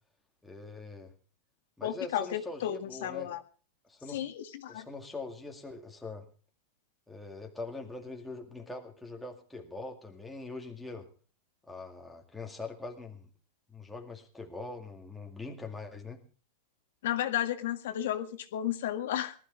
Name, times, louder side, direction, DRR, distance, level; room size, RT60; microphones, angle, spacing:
voice 1, 0.4-1.1 1.8-3.3 3.9-4.2 4.7-6.3 7.1-11.1 11.7-13.3 13.7-16.2, left 3 dB, 5° left, 1 dB, 2.1 m, -42 dB
voice 2, 1.8-3.4 4.1-4.9 17.0-19.3, left 11 dB, 70° left, 7 dB, 1.8 m, -33 dB
19.5 x 13.0 x 4.1 m, 0.39 s
supercardioid pair, 165°, 0 cm